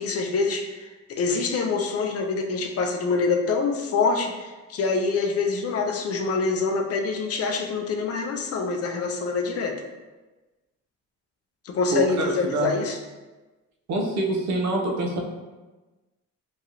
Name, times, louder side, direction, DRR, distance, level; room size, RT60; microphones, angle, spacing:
voice 1, 0.0-9.8 11.6-13.0, left 4 dB, 50° left, 3 dB, 0.5 m, -25 dB
voice 2, 11.9-12.8 13.9-15.2, right 1 dB, 65° right, 0 dB, 0.7 m, -25 dB
3.0 x 2.4 x 2.9 m, 1.2 s
cardioid pair, 90°, 30 cm